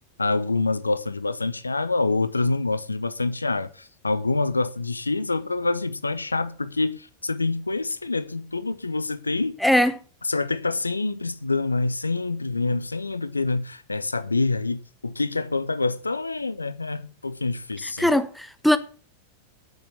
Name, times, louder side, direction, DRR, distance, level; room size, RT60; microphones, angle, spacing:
voice 1, 0.2-9.6 10.2-18.1, left 3 dB, 80° left, 0.8 m, -26 dB
voice 2, 18.0-18.8, left 1 dB, ahead, 1.0 m, -20 dB
9.4 x 7.4 x 8.0 m
figure-of-eight pair, 90°, 0 cm